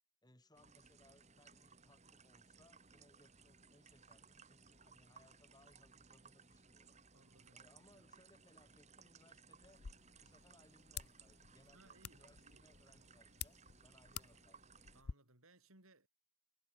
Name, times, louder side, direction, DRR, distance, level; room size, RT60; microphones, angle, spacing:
voice 1, 0.2-7.0 7.5-9.8 10.2-14.6, left 1 dB, 20° left, 3.2 m, -69 dB
sound 1, 0.5-15.0, right 5 dB, 30° right, 6.9 m, -63 dB
voice 2, 7.1-8.0 11.6-12.7 14.1-14.4 14.9-16.1, right 2 dB, 75° right, 6.2 m, -67 dB
sound 2, 9.6-15.1, left 8 dB, 85° left, 0.8 m, -52 dB
head